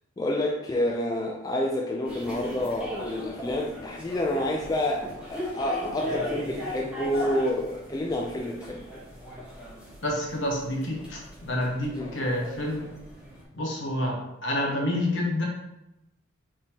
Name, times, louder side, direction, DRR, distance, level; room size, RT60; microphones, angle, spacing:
voice 1, 0.2-9.0 11.9-12.2, left 1 dB, 20° left, 0 dB, 0.3 m, -29 dB
sound 1, 2.0-13.4, equal, 5° right, 1.0 m, -38 dB
voice 2, 10.0-12.9 13.5-15.5, left 1 dB, 60° left, -1 dB, 1.1 m, -28 dB
5.2 x 3.4 x 2.8 m, 0.90 s
head